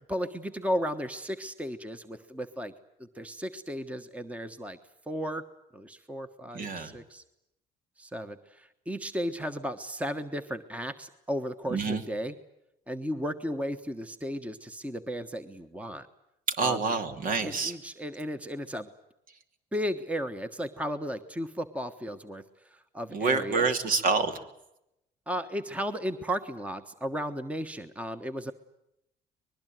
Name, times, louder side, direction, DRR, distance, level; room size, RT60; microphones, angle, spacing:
voice 1, 0.1-2.7 3.0-4.8 5.1-5.4 5.7-7.2 8.0-12.3 12.9-16.1 16.6-17.0 17.4-18.9 19.7-23.8 25.3-28.5, equal, 10° right, 10 dB, 1.3 m, -35 dB
voice 2, 6.5-6.9 11.7-12.0 16.6-17.7 23.1-24.4, right 4 dB, 55° right, 8 dB, 2.9 m, -27 dB
24.0 x 21.5 x 9.3 m, 0.83 s
cardioid pair, 110°, 17 cm